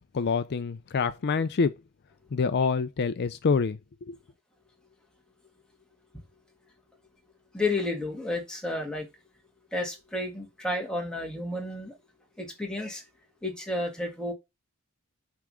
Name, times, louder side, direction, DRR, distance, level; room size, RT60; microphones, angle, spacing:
voice 1, 0.1-1.8 2.3-3.8 4.1-4.2, left 5 dB, 50° left, 0.4 m, -26 dB
voice 2, 7.5-9.1 9.7-11.9 12.4-13.0 13.4-14.3, left 2 dB, 5° left, 1.9 m, -31 dB
8.5 x 3.5 x 6.2 m
head